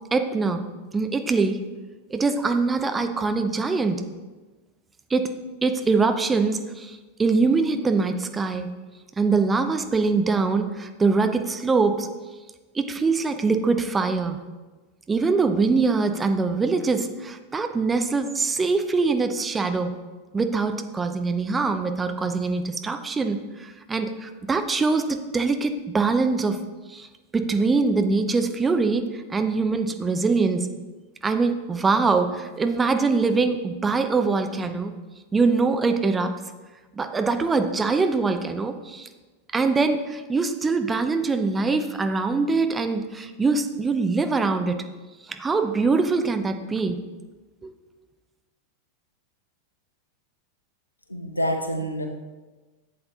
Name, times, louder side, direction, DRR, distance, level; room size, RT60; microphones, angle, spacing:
voice 1, 0.1-0.6 0.9-1.6 2.1-4.0 5.1-5.3 5.6-8.7 9.2-12.1 12.7-14.4 15.1-19.9 20.3-26.6 26.9-27.1 27.3-30.7 31.2-34.9 35.3-36.4 36.9-39.1 39.5-44.8 45.3-47.0 47.6-47.7, right 4 dB, 15° right, 7 dB, 0.6 m, -23 dB
voice 2, 51.1-52.1, equal, 85° left, 5 dB, 0.9 m, -27 dB
11.5 x 7.9 x 2.8 m, 1.2 s
figure-of-eight pair, 90°, 0 cm